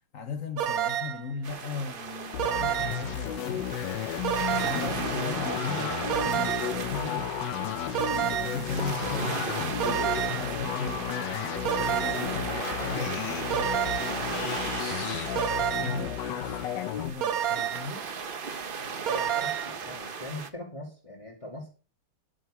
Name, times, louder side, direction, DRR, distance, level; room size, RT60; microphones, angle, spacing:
voice 1, 0.1-3.7 4.5-6.0 6.4-7.3 8.0-11.1 11.6-14.4 14.9-18.1, left 4 dB, 50° left, 1.4 m, -38 dB
sound 1, 0.6-1.3 2.4-3.1 4.2-5.0 6.1-6.8 7.9-8.7 9.8-10.5 11.6-12.4 13.5-14.2 15.4-16.1 17.2-17.9 19.1-19.8, right 10 dB, 60° right, 1.2 m, -29 dB
sound 2, 1.4-20.5, right 5 dB, 40° right, 0.8 m, -36 dB
sound 3, 2.3-17.1, left 12 dB, 90° left, 1.4 m, -33 dB
voice 2, 19.0-21.7, left 1 dB, 20° left, 2.5 m, -40 dB
10.0 x 9.6 x 5.0 m
omnidirectional pair, 1.9 m